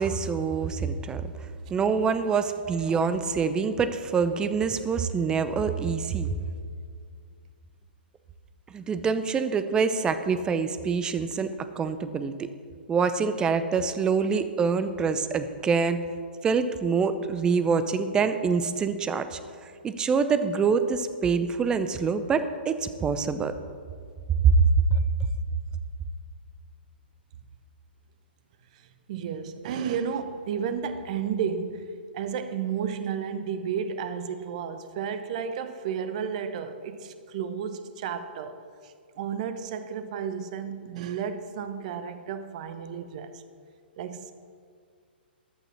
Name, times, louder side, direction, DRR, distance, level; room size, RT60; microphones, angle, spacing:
voice 1, 0.0-1.3 1.7-6.3 8.7-12.5 12.9-16.0 16.4-23.6 24.4-24.6 24.9-25.0, right 5 dB, 15° right, 0.6 m, -25 dB
voice 2, 29.1-43.4 44.0-44.3, right 7 dB, 40° right, 0.9 m, -32 dB
14.5 x 11.0 x 4.2 m
figure-of-eight pair, 115°, 6 cm